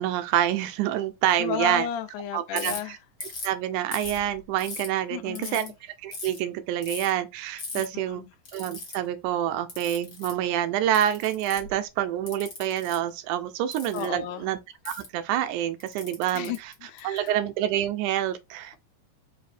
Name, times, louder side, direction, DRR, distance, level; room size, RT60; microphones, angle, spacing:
voice 1, 0.0-1.9 2.3-3.0 3.4-8.2 8.5-14.6 14.9-16.7 17.0-18.8, right 11 dB, 80° right, 1.9 m, -27 dB
voice 2, 1.4-3.0 5.1-5.7 7.7-7.8 8.2-8.3 13.9-14.5 16.3-17.4, left 9 dB, 80° left, 1.9 m, -33 dB
Ratchet pawl, 2.5-2.8 3.2-3.5 3.9-4.9 5.3-5.7 6.1-6.4 6.8-7.1 7.6-7.8 8.4-9.0 9.7-10.4 10.9-11.7 12.3-13.0 13.7-14.0 14.8-15.1 15.8-17.3, left 4 dB, 45° left, 1.7 m, -37 dB
4.9 x 2.7 x 3.2 m
omnidirectional pair, 3.7 m